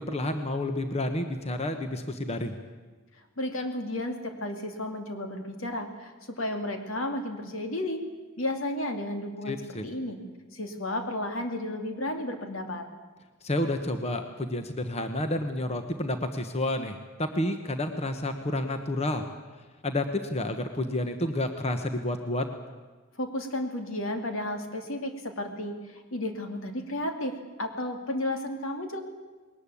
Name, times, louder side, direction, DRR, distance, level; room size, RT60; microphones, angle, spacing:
voice 1, 0.0-2.6 9.4-9.8 13.4-19.2 19.8-22.5, left 1 dB, 30° left, 7 dB, 1.2 m, -30 dB
voice 2, 3.4-8.0 8.4-9.6 9.8-10.2 10.5-12.9 23.2-29.0, left 1 dB, 80° left, 5 dB, 2.6 m, -33 dB
21.0 x 19.0 x 8.5 m, 1.3 s
head